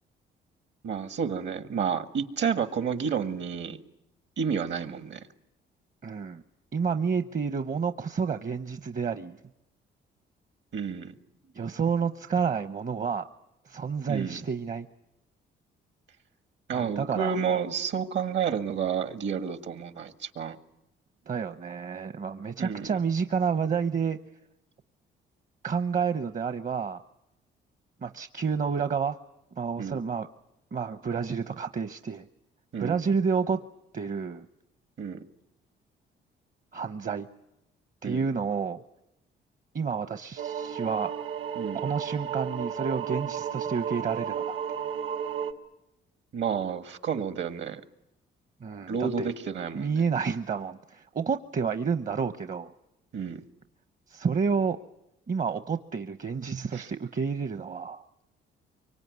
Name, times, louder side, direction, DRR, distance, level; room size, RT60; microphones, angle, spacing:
voice 1, 0.8-3.8 4.4-5.2 10.7-11.1 14.1-14.4 16.7-20.6 22.6-22.9 29.8-30.0 32.7-33.0 35.0-35.2 38.0-38.2 41.6-41.8 46.3-47.8 48.9-50.0 53.1-53.4 56.7-56.9, right 7 dB, 65° right, 9 dB, 1.7 m, -30 dB
voice 2, 6.0-6.4 6.7-9.4 11.5-13.3 13.6-14.9 16.7-17.4 21.3-24.2 25.6-27.0 28.0-29.2 29.6-30.3 30.7-32.3 32.8-33.6 33.9-34.5 36.7-37.3 38.0-38.8 39.7-41.1 41.8-44.4 48.6-49.3 49.7-52.7 54.1-54.8 55.3-58.0, right 6 dB, 40° right, 10 dB, 0.9 m, -29 dB
sound 1, 40.4-45.5, right 8 dB, 80° right, 2.1 m, -33 dB
24.5 x 24.0 x 9.5 m, 0.90 s
cardioid pair, 90°, 20 cm